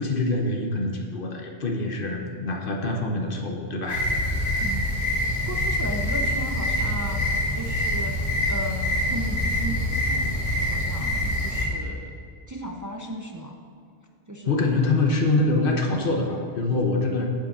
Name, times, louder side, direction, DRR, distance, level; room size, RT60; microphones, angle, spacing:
voice 1, 0.0-4.6 14.5-17.3, left 2 dB, 55° left, 2 dB, 1.1 m, -25 dB
sound 1, 3.9-11.6, left 1 dB, 35° left, 2.3 m, -25 dB
voice 2, 4.6-5.0 5.4-7.3 7.6-12.1 12.5-13.6 14.3-14.8, right 1 dB, 25° right, 1 dB, 0.4 m, -36 dB
8.8 x 5.1 x 6.6 m, 2.3 s
omnidirectional pair, 1.1 m